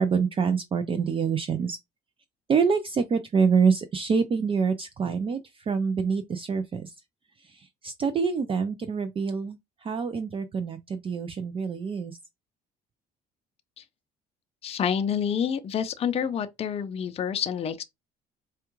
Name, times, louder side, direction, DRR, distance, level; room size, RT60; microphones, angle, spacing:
voice 1, 0.0-1.8 2.5-5.4 5.7-6.9 7.5-9.6 9.8-12.2, right 5 dB, 30° right, 0.4 m, -26 dB
voice 2, 14.6-17.8, left 8 dB, 35° left, 0.5 m, -28 dB
4.4 x 2.4 x 3.0 m
cardioid pair, 110°, 17 cm